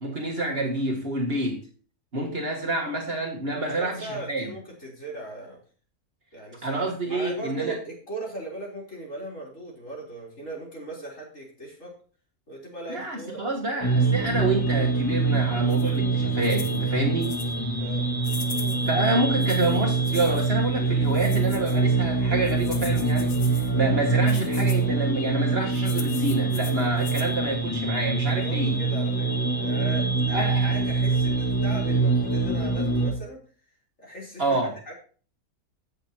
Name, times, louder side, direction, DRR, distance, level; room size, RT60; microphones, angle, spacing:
voice 1, 0.0-1.6 2.1-4.5 6.6-7.8 12.9-17.4 18.9-28.8 30.3-30.7 34.4-34.7, right 2 dB, 40° right, 0 dB, 1.6 m, -28 dB
voice 2, 3.6-5.6 6.3-11.9 12.5-13.5 17.8-18.1 28.3-33.4 34.0-34.9, right 2 dB, 55° left, -3 dB, 4.2 m, -38 dB
sound 1, 13.8-33.1, right 3 dB, 15° left, 1.7 m, -24 dB
sound 2, 15.7-16.0 16.4-16.8 17.2-17.5 18.2-18.9 19.4-20.5 21.1-21.8 22.4-23.7 24.3-24.8 25.7-27.3, left 6 dB, 70° left, 1.6 m, -41 dB
16.0 x 6.7 x 2.9 m, 0.41 s
omnidirectional pair, 1.6 m